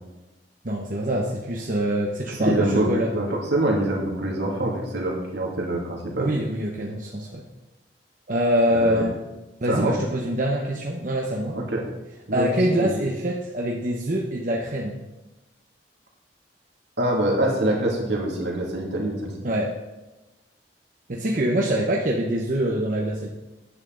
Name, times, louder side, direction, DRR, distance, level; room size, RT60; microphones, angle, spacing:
voice 1, 0.6-3.1 6.2-7.4 8.3-9.2 9.6-11.6 12.3-15.0 19.4-19.7 21.1-23.3, equal, 50° right, -2 dB, 1.0 m, -24 dB
voice 2, 2.3-6.3 8.7-9.0 9.7-9.9 11.5-11.8 12.3-12.5 12.8-13.0 17.0-19.3, right 1 dB, 75° right, -1 dB, 2.4 m, -25 dB
9.7 x 8.4 x 3.9 m, 1.0 s
head